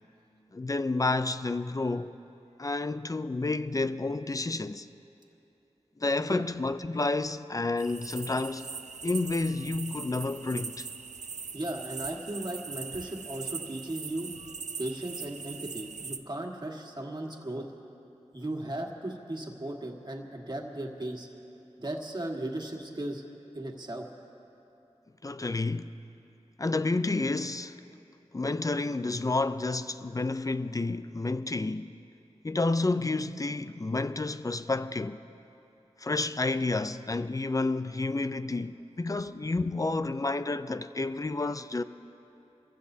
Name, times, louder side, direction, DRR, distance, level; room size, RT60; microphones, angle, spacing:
voice 1, 0.5-2.1 2.6-4.9 6.0-8.7 9.0-10.8 25.2-25.9 26.6-27.8 28.3-31.9 32.4-35.2 36.0-41.8, left 3 dB, 30° left, 0.4 m, -30 dB
sound 1, 7.8-16.2, right 5 dB, 90° right, 0.5 m, -41 dB
voice 2, 11.5-14.3 14.8-17.6 18.3-21.3 21.8-23.2 23.5-24.1, right 1 dB, 40° right, 1.7 m, -36 dB
28.0 x 15.5 x 2.8 m
wide cardioid pair, 60°, 12 cm